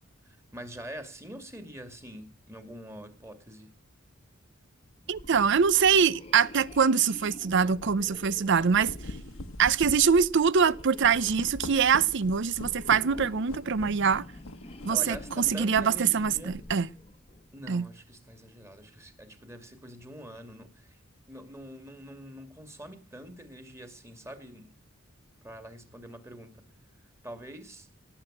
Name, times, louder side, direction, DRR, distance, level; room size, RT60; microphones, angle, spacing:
voice 1, 0.2-3.7 14.6-16.6 17.5-21.0 21.3-24.7 25.4-26.6 27.2-27.9, equal, 15° right, 2.4 m, -45 dB
sound 1, 5.1-17.6, left 1 dB, 30° left, 1.3 m, -47 dB
voice 2, 5.1-9.1 9.6-14.2 14.8-16.9 17.7-17.9, right 6 dB, 60° right, 0.6 m, -24 dB
sound 2, 7.7-7.9 8.5-16.9, left 1 dB, 85° left, 1.4 m, -43 dB
18.5 x 7.9 x 7.5 m
head